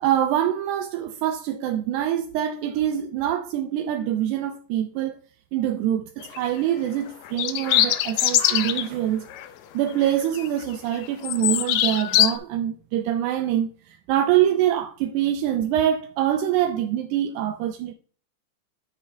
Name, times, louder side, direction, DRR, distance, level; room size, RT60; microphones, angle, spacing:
voice 1, 0.0-5.2 5.5-9.3 9.7-13.7 14.1-17.9, right 11 dB, 80° right, 1.8 m, -24 dB
sound 1, 6.2-6.5 7.3-8.9 9.3-9.5 9.9-10.6 10.9-12.3, left 12 dB, 85° left, 1.6 m, -22 dB
9.2 x 7.6 x 2.6 m
omnidirectional pair, 3.9 m